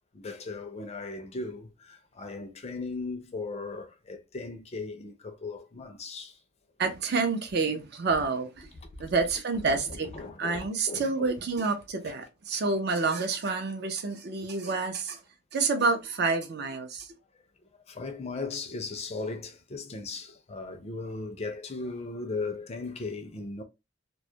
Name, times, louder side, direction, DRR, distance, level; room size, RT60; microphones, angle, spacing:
voice 1, 0.1-6.4 9.6-11.3 12.5-12.6 14.7-14.8 17.9-23.6, left 3 dB, 35° left, 0.4 m, -37 dB
voice 2, 6.8-8.7 9.0-10.1 10.4-15.2 15.5-17.2, right 4 dB, 55° right, 0.5 m, -28 dB
2.2 x 2.1 x 2.7 m
head